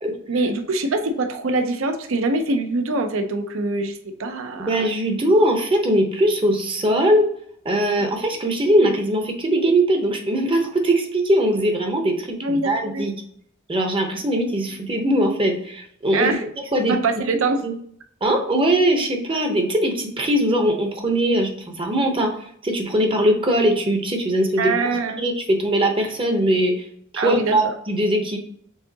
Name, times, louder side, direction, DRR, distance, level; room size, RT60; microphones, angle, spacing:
voice 1, 0.3-4.9 12.4-13.1 16.1-16.4 16.9-17.6 24.6-25.3 27.2-27.7, right 3 dB, 65° right, 6 dB, 0.6 m, -24 dB
voice 2, 4.6-7.3 7.6-13.1 13.7-16.3 16.7-17.0 17.6-17.7 18.2-22.3 22.6-26.8 27.1-28.4, right 1 dB, 25° right, 3 dB, 0.7 m, -21 dB
4.8 x 3.7 x 2.7 m, 0.65 s
head